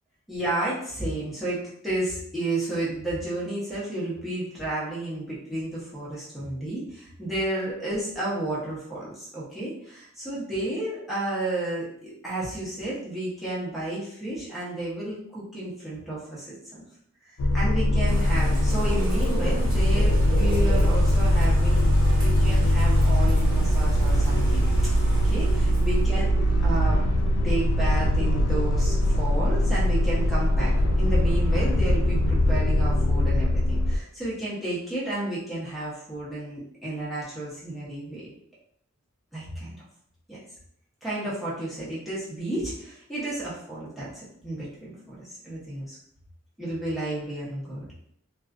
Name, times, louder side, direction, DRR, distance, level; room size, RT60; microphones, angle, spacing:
voice 1, 0.3-16.8 17.5-21.9 22.2-24.6 25.2-30.7 31.0-38.2 39.3-39.7 40.3-40.4 41.0-44.7 45.1-46.0 46.6-47.9, right 1 dB, ahead, -10 dB, 0.8 m, -32 dB
sound 1, 17.4-34.0, equal, 85° left, 0.4 m, -21 dB
Bird / Rain, 18.1-26.2, right 1 dB, 80° right, 1.1 m, -34 dB
2.4 x 2.2 x 2.4 m, 0.68 s
head